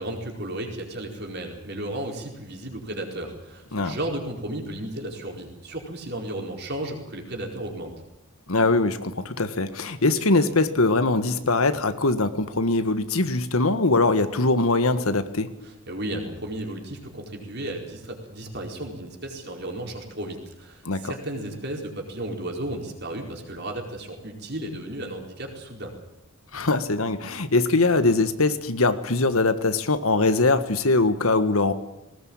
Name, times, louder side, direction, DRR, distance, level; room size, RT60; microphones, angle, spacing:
voice 1, 0.0-7.9 15.6-25.9, right 1 dB, 50° right, 2 dB, 4.7 m, -34 dB
voice 2, 8.5-15.5 20.8-21.1 26.5-31.7, left 3 dB, 75° left, 11 dB, 1.6 m, -22 dB
20.0 x 19.0 x 8.8 m, 0.87 s
head